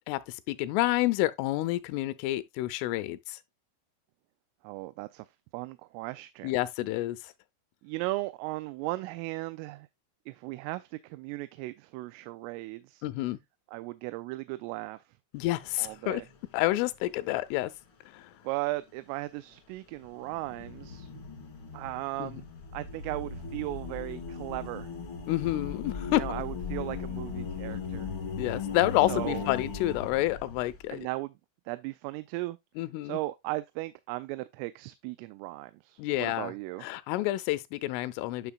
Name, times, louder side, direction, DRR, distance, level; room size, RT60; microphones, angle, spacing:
voice 1, 0.1-3.4 6.4-7.2 13.0-13.4 15.3-16.2 16.5-17.7 18.1-18.3 22.2-22.3 25.3-26.2 28.4-31.1 32.8-33.2 36.0-36.5 36.8-38.5, left 16 dB, 90° left, 3.2 m, -29 dB
voice 2, 4.6-5.3 5.5-6.5 7.8-9.9 10.3-13.0 13.7-15.0 15.8-16.3 18.4-21.1 21.7-22.5 22.7-24.9 26.0-28.1 29.1-29.5 30.9-31.3 31.7-32.6 33.0-36.9, right 20 dB, 90° right, 3.1 m, -36 dB
sound 1, 15.4-16.1 16.5-16.6 20.0-30.9, left 5 dB, 65° left, 1.2 m, -38 dB
10.5 x 5.8 x 2.3 m
omnidirectional pair, 5.7 m